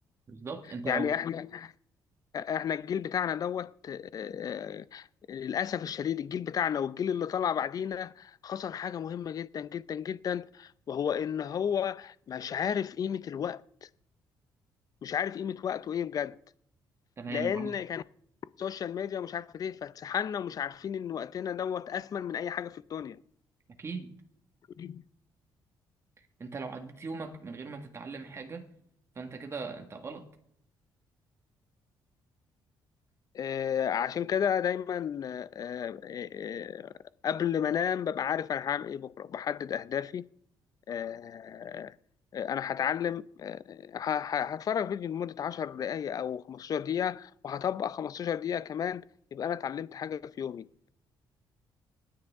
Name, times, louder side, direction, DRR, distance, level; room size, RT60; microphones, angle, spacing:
voice 1, 0.3-1.2 17.2-17.7 23.8-24.1 26.4-28.7 29.2-30.3, right 4 dB, 30° right, 1.6 m, -39 dB
voice 2, 0.9-1.7 2.3-13.9 15.0-16.4 17.3-18.0 18.6-23.2 24.8-25.0 33.3-36.9 37.2-40.2 40.9-41.9 42.3-49.0 49.3-50.9, left 8 dB, 45° left, 0.5 m, -33 dB
25.5 x 9.7 x 3.6 m
cardioid pair, 110°, 8 cm